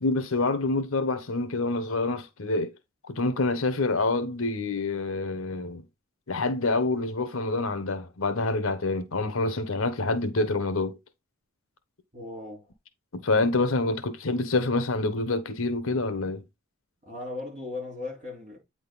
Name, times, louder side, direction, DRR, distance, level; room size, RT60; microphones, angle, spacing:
voice 1, 0.0-2.7 3.0-5.8 6.3-11.0 13.1-16.4, left 2 dB, 75° left, 1.0 m, -27 dB
voice 2, 12.1-12.7 17.0-18.6, left 3 dB, 35° right, 4.4 m, -37 dB
8.9 x 3.9 x 4.0 m
head